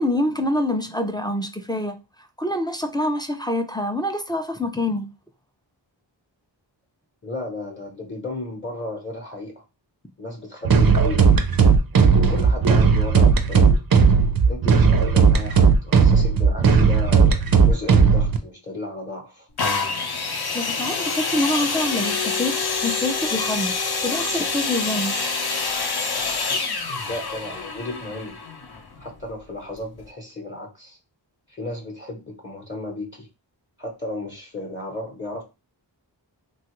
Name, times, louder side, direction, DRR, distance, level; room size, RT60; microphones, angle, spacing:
voice 1, 0.0-2.0 2.4-5.1 20.5-22.6 22.8-23.7 24.0-25.1, left 1 dB, 10° left, 0.3 m, -25 dB
voice 2, 7.2-9.6 10.2-11.3 12.3-13.7 14.5-19.5 27.1-28.4 29.0-31.0 31.5-33.3 33.8-35.4, left 2 dB, 25° left, 0.8 m, -34 dB
sound 1, 10.6-18.4, right 5 dB, 55° right, 0.5 m, -16 dB
sound 2, 19.6-29.3 30.0-30.1, left 4 dB, 60° left, 0.6 m, -26 dB
3.1 x 2.3 x 2.9 m
wide cardioid pair, 75°, 44 cm